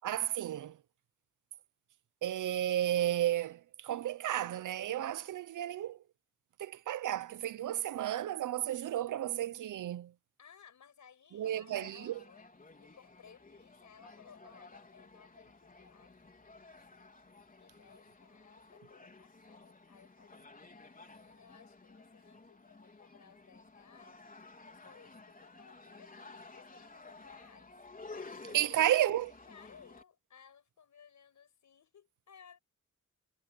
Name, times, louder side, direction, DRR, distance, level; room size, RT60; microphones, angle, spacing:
voice 1, 0.0-0.8 2.2-6.0 6.6-10.1 11.3-12.2 28.4-29.3, right 12 dB, 90° right, 0.8 m, -33 dB
voice 2, 10.4-12.5 12.8-17.1 17.6-20.5 21.1-24.4 24.6-27.7 28.5-28.9 29.5-32.6, left 7 dB, 70° left, 6.3 m, -60 dB
sound 1, 11.4-30.0, left 3 dB, 30° left, 4.2 m, -54 dB
cardioid pair, 90°, 30 cm